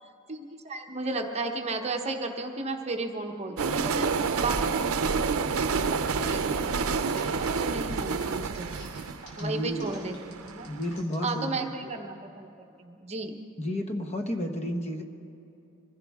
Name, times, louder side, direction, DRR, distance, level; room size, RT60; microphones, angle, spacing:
voice 1, 0.3-4.1 4.4-4.7 4.9-5.0 5.4-6.6 7.1-8.7 9.4-10.7 11.2-12.5 12.8-13.3, right 3 dB, 30° right, 4 dB, 1.0 m, -34 dB
sound 1, 3.6-10.6, right 5 dB, 80° right, 0.6 m, -28 dB
sound 2, 4.8-5.3 5.7-6.6 7.0-11.4, left 1 dB, 60° left, 4.2 m, -48 dB
voice 2, 9.4-9.9 10.6-11.9 13.6-15.0, equal, 30° left, 4 dB, 1.2 m, -32 dB
25.0 x 16.0 x 3.6 m, 2.8 s
head